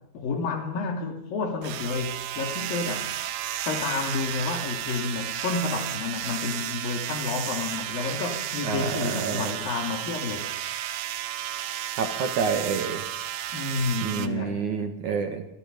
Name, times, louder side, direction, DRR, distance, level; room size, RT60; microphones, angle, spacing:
voice 1, 0.1-3.1 3.7-10.5 13.5-14.7, left 4 dB, 60° left, 4.4 m, -30 dB
sound 1, 1.6-14.3, right 12 dB, 75° right, 3.1 m, -33 dB
voice 2, 8.6-9.5 12.0-13.0 14.0-15.5, right 6 dB, 55° right, 3.0 m, -28 dB
29.5 x 26.5 x 5.4 m
omnidirectional pair, 4.7 m